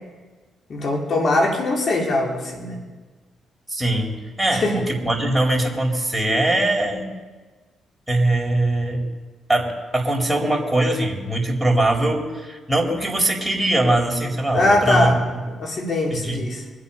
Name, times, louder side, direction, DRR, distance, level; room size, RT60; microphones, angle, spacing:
voice 1, 0.7-2.8 4.5-4.8 14.5-15.2 15.5-16.6, left 2 dB, 55° left, 1 dB, 3.2 m, -21 dB
voice 2, 3.7-7.1 8.1-9.0 9.5-15.4 16.1-16.4, right 1 dB, 5° right, -1 dB, 4.0 m, -21 dB
24.0 x 8.5 x 5.7 m, 1.3 s
supercardioid pair, 65°, 0 cm